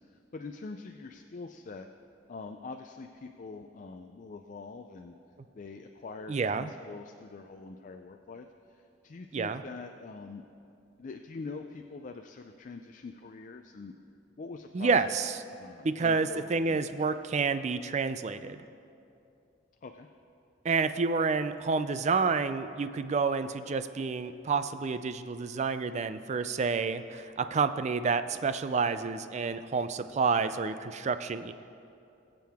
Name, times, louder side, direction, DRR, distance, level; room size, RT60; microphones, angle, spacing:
voice 1, 0.3-1.9 2.3-5.2 5.5-10.4 11.0-13.9 14.4-14.9 15.6-17.2 19.8-20.1, left 4 dB, 45° left, 5 dB, 0.4 m, -44 dB
voice 2, 6.3-6.7 9.3-9.6 14.7-15.3 15.8-18.6 20.6-31.5, right 4 dB, 40° right, 11 dB, 0.4 m, -29 dB
20.0 x 7.6 x 3.5 m, 2.6 s
head